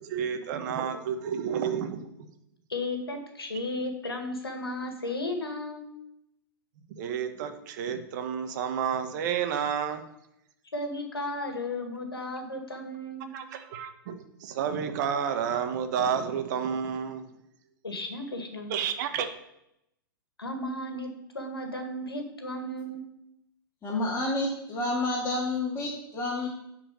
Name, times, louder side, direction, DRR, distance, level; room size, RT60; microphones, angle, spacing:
voice 1, 0.0-2.1 7.0-10.0 13.3-14.1 14.4-17.2 18.7-19.3, right 7 dB, 50° right, 7 dB, 1.4 m, -30 dB
voice 2, 2.7-5.9 10.7-13.3 17.8-18.7 20.4-21.1 21.3-23.1, left 1 dB, 85° left, 4 dB, 1.8 m, -34 dB
voice 3, 23.8-26.5, left 2 dB, 20° left, -5 dB, 2.2 m, -29 dB
10.0 x 4.7 x 6.8 m, 0.81 s
figure-of-eight pair, 105°, 12 cm